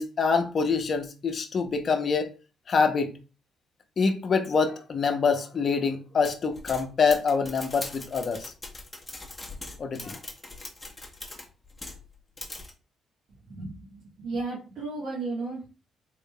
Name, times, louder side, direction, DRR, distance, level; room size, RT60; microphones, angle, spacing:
voice 1, 0.0-2.3 2.7-3.1 4.0-8.5 9.8-10.2, left 5 dB, 45° left, 0.7 m, -25 dB
sound 1, 6.2-12.1 12.4-12.7, left 2 dB, 15° left, 1.0 m, -41 dB
voice 2, 13.5-15.7, right 3 dB, 65° right, 1.4 m, -34 dB
3.9 x 3.5 x 2.2 m
cardioid pair, 90°, 0 cm